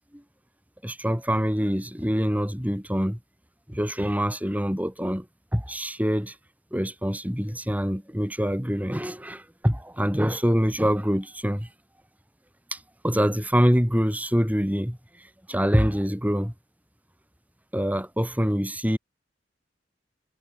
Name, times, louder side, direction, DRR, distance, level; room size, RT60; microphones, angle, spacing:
voice 1, 0.8-3.2 3.7-5.3 5.5-6.4 6.7-11.7 12.7-16.5 17.7-19.0, equal, 10° right, 7.0 m, -25 dB
head